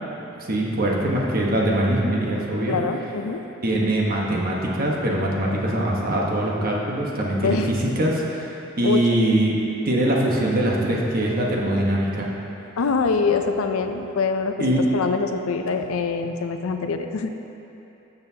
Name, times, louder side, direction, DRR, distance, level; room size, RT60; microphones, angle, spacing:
voice 1, 0.4-2.8 3.6-9.5 9.8-12.3 14.6-14.8, right 1 dB, 45° right, -3 dB, 1.1 m, -22 dB
voice 2, 2.7-3.4 7.4-7.7 8.8-9.2 12.8-17.5, left 4 dB, 90° left, 7 dB, 0.5 m, -24 dB
12.5 x 6.8 x 2.8 m, 3.0 s
head